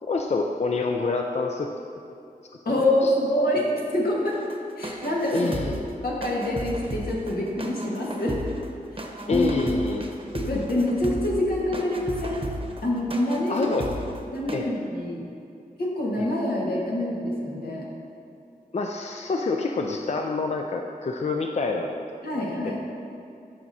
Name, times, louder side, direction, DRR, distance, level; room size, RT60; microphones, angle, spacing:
voice 1, 0.0-1.7 2.8-3.1 5.3-5.8 9.3-10.0 13.5-13.9 14.5-14.7 16.2-16.3 18.7-22.0 22.4-22.8, left 3 dB, 45° left, 2 dB, 0.4 m, -27 dB
voice 2, 2.6-4.4 4.8-5.7 6.0-8.4 8.9-9.5 10.3-12.5 12.8-13.7 14.3-15.2 15.8-17.8 22.2-22.8, left 1 dB, 80° left, -4 dB, 1.6 m, -26 dB
sound 1, 4.3-14.6, right 1 dB, 35° right, 0.9 m, -35 dB
13.5 x 5.9 x 2.8 m, 2.5 s
wide cardioid pair, 90°, 15 cm